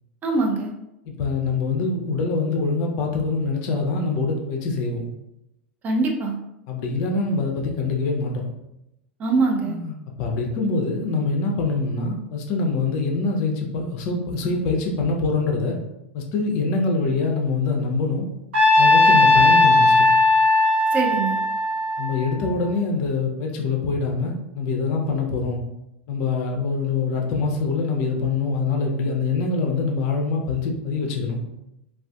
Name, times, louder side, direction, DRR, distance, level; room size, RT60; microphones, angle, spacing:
voice 1, 0.2-0.7 5.8-6.4 9.2-9.8 20.9-21.4, right 3 dB, 25° right, 1 dB, 0.4 m, -22 dB
voice 2, 1.1-5.1 6.7-8.5 9.6-15.8 16.1-18.3 18.8-20.1 22.0-25.6 26.1-31.4, left 3 dB, 45° left, 1 dB, 0.4 m, -24 dB
Trumpet, 18.5-22.8, left 2 dB, 60° right, 0.7 m, -17 dB
2.4 x 2.3 x 2.2 m, 0.88 s
figure-of-eight pair, 85°, 7 cm